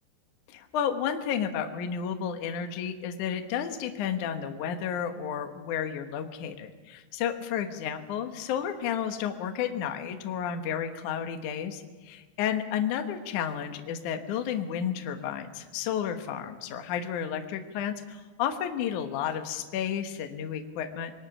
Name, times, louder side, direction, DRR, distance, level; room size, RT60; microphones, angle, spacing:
voice 1, 0.5-21.1, left 8 dB, 80° left, 6 dB, 1.7 m, -32 dB
26.5 x 22.0 x 6.2 m, 1.3 s
omnidirectional pair, 5.8 m